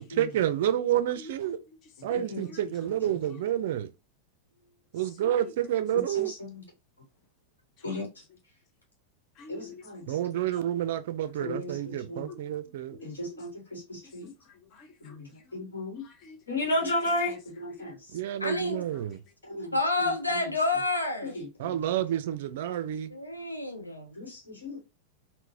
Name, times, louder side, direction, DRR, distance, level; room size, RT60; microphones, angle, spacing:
voice 1, 0.0-1.6 2.0-3.9 4.9-6.3 10.1-13.0 18.1-19.2 21.6-23.1, right 11 dB, 55° right, 0.4 m, -29 dB
voice 2, 1.2-2.6 5.0-5.5 7.8-7.9 9.4-10.1 11.8-12.0 12.3-12.5 12.9-13.4 14.0-15.2 16.0-16.4 17.7-17.9 18.5-19.3, left 5 dB, 35° left, 0.6 m, -49 dB
voice 3, 2.0-2.5 6.1-6.6 7.8-8.2 9.5-10.2 11.4-12.3 13.0-14.3 15.0-16.0 16.5-18.2 19.4-20.5 21.2-21.7 24.2-24.8, left 1 dB, 70° left, 1.1 m, -35 dB
voice 4, 18.4-18.8 19.7-21.4 23.1-24.2, left 2 dB, 85° left, 0.7 m, -29 dB
3.8 x 2.1 x 2.6 m
figure-of-eight pair, 90°, 0 cm